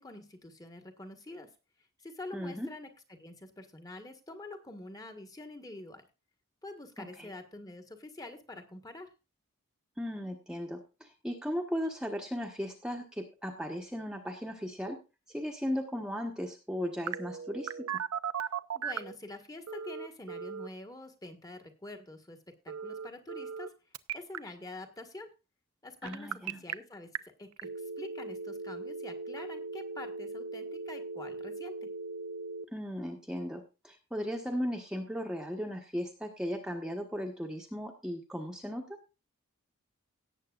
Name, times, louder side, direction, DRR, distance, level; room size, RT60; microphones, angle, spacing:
voice 1, 0.0-1.5 2.0-6.1 6.6-9.1 18.7-23.7 24.1-25.3 25.8-27.7 28.0-31.9, left 2 dB, 15° left, 6 dB, 1.5 m, -46 dB
voice 2, 2.3-2.7 7.0-7.3 10.0-15.0 15.3-18.0 26.0-26.6 32.7-39.0, equal, 5° right, 1 dB, 1.2 m, -36 dB
Telephone, 17.1-19.2 19.7-20.7 22.7-23.7 23.9-24.4 26.1-26.7 27.2-27.3 27.6-32.6, right 5 dB, 85° right, 0.7 m, -38 dB
18.0 x 8.3 x 2.4 m, 0.29 s
head